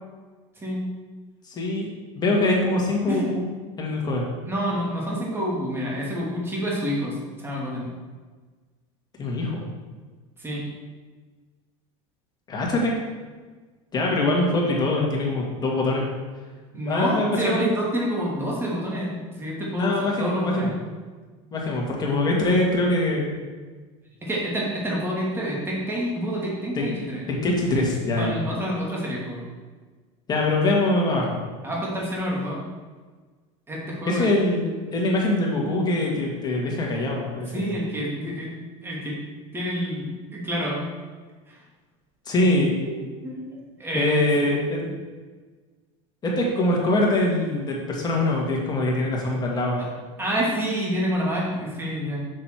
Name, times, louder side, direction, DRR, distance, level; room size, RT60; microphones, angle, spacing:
voice 1, 1.5-1.9 2.2-3.4 3.8-4.3 9.2-9.7 12.5-13.0 13.9-16.0 16.7-17.7 19.8-20.8 21.5-23.4 26.8-26.9 27.3-28.5 30.3-31.5 34.1-37.7 42.3-42.7 43.9-44.8 46.2-49.9, left 2 dB, 25° left, -2 dB, 2.1 m, -23 dB
voice 2, 4.5-7.9 10.4-10.6 16.7-20.8 24.2-27.2 28.2-29.4 31.6-32.6 33.7-34.3 37.5-38.5 38.8-39.2 39.5-40.8 41.5-41.6 42.8-44.2 50.2-52.2, equal, 15° right, -4 dB, 2.4 m, -28 dB
6.7 x 6.5 x 4.6 m, 1.4 s
supercardioid pair, 125°, 16 cm